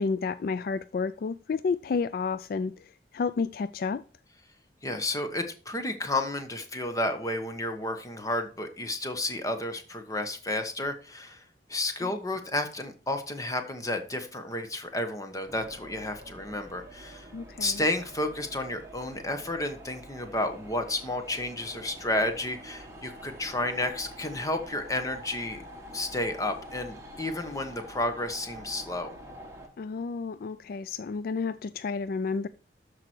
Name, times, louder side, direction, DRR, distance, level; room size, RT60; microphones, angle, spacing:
voice 1, 0.0-2.7 3.1-4.0 12.0-12.1 17.3-17.8 29.8-32.5, left 4 dB, 55° left, 0.3 m, -31 dB
voice 2, 4.8-11.4 11.7-17.3 17.6-25.6 25.9-29.1, left 1 dB, 20° left, 1.1 m, -31 dB
sound 1, 15.5-29.7, equal, 15° right, 1.8 m, -46 dB
13.0 x 4.9 x 4.4 m
head